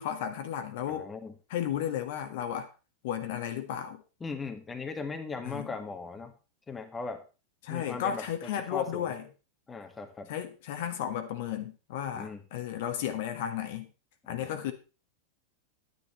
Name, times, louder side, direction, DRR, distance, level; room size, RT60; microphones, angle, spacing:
voice 1, 0.0-1.1 1.5-2.7 3.0-4.0 5.4-5.7 7.6-9.2 10.3-13.9 14.3-14.7, left 10 dB, 50° left, 7 dB, 1.6 m, -34 dB
voice 2, 0.9-1.3 4.2-6.3 6.7-7.2 7.7-8.3 8.7-9.1 9.7-10.3 12.1-12.4 14.3-14.5, left 4 dB, 15° left, 6 dB, 1.7 m, -38 dB
11.5 x 9.7 x 4.3 m, 0.33 s
figure-of-eight pair, 90°, 0 cm